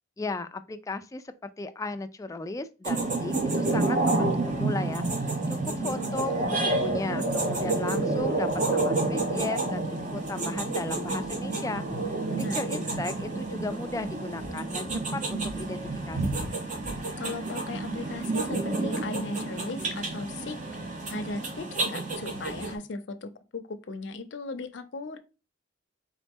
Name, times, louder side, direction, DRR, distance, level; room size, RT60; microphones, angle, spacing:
voice 1, 0.2-16.5, left 2 dB, 15° left, 0.3 m, -36 dB
sound 1, 2.8-22.7, right 2 dB, 45° right, 0.9 m, -29 dB
voice 2, 5.8-6.7 12.3-12.7 17.2-20.6 21.1-25.2, left 2 dB, 75° left, 0.6 m, -37 dB
4.0 x 3.6 x 3.5 m
head